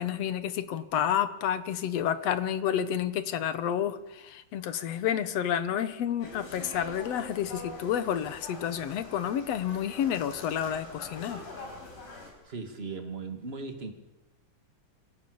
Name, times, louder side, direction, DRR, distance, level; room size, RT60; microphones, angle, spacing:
voice 1, 0.0-11.4, left 9 dB, 60° left, 12 dB, 2.0 m, -30 dB
sound 1, 6.2-12.3, left 2 dB, 90° left, 7.1 m, -44 dB
voice 2, 12.4-13.9, right 4 dB, 20° right, 5 dB, 2.1 m, -38 dB
26.5 x 17.5 x 7.2 m, 1.0 s
omnidirectional pair, 3.6 m